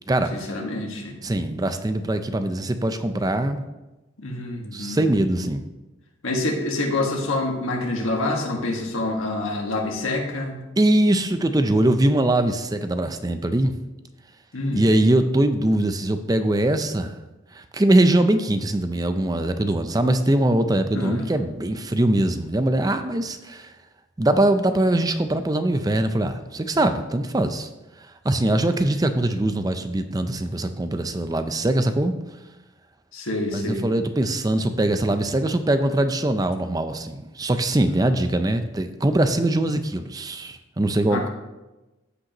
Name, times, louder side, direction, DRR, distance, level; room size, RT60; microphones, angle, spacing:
voice 1, 0.3-1.2 4.2-5.0 6.2-10.6 14.5-14.9 20.9-21.2 33.1-33.8 41.1-41.3, left 2 dB, 85° left, 0 dB, 1.6 m, -27 dB
voice 2, 1.2-3.6 4.7-5.6 10.8-13.8 14.7-17.1 17.5-23.7 24.2-27.7 28.2-32.1 33.5-41.3, right 1 dB, 20° right, 9 dB, 0.4 m, -22 dB
14.5 x 5.2 x 3.0 m, 1.1 s
head